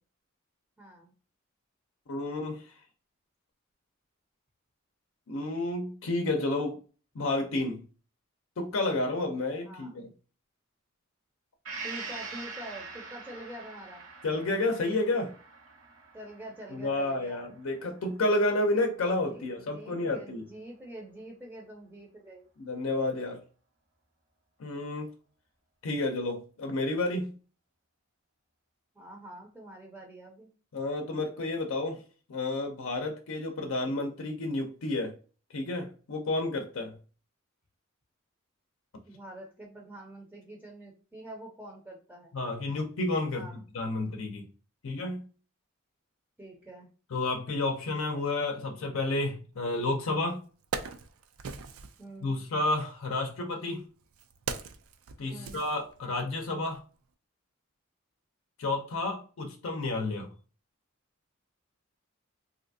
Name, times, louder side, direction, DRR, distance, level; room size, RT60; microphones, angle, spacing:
voice 1, 0.8-1.1 9.6-10.1 11.8-14.1 16.1-17.4 19.3-22.5 28.9-30.5 39.1-42.4 43.3-43.7 46.4-46.9 52.0-52.4 55.3-55.6, right 1 dB, 10° right, -1 dB, 0.5 m, -46 dB
voice 2, 2.1-2.7 5.3-6.8 7.1-7.8 8.6-10.1 14.2-15.3 16.7-20.4 22.6-23.4 24.6-25.1 25.8-27.3 30.7-32.0 32.3-35.1 35.5-37.0 42.3-43.5 43.7-44.5 44.8-45.3 47.1-50.4 52.2-53.8 55.2-56.8 58.6-60.3, left 2 dB, 70° left, 3 dB, 0.5 m, -30 dB
Gong, 11.6-19.3 19.7-19.8, right 4 dB, 65° right, 0.9 m, -45 dB
Wood, 49.9-50.0 50.4-52.0 53.0-56.3 56.7-56.8, right 5 dB, 85° right, 0.4 m, -40 dB
3.2 x 2.6 x 2.6 m, 0.38 s
head